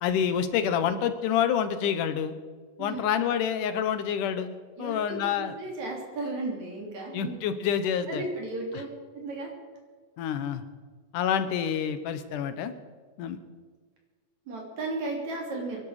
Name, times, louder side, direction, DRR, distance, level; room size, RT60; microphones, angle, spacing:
voice 1, 0.0-2.3 2.8-4.5 4.8-5.5 7.1-8.2 10.2-10.6 11.1-12.7 13.2-13.4, left 8 dB, 90° left, 11 dB, 2.6 m, -27 dB
voice 2, 4.8-7.3 8.1-8.9 9.1-9.5 14.5-15.8, right 2 dB, 65° right, -1 dB, 4.4 m, -34 dB
23.5 x 11.5 x 4.9 m, 1.5 s
omnidirectional pair, 3.5 m